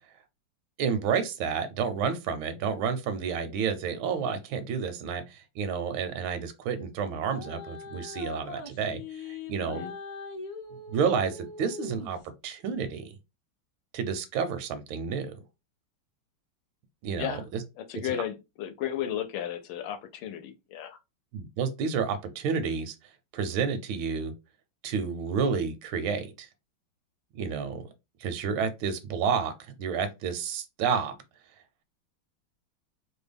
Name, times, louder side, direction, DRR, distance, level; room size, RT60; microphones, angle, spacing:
voice 1, 0.8-9.9 10.9-12.2 12.4-13.1 13.9-15.4 17.0-17.6 18.0-18.2 21.3-22.9 23.3-24.3 24.8-26.5 27.3-27.9 28.2-31.1, right 6 dB, 80° right, 1.4 m, -30 dB
sound 1, 7.2-12.3, left 3 dB, 60° left, 0.9 m, -41 dB
voice 2, 9.6-9.9 17.2-17.4 17.8-21.0, left 10 dB, 80° left, 1.3 m, -34 dB
3.4 x 2.2 x 3.3 m
omnidirectional pair, 2.2 m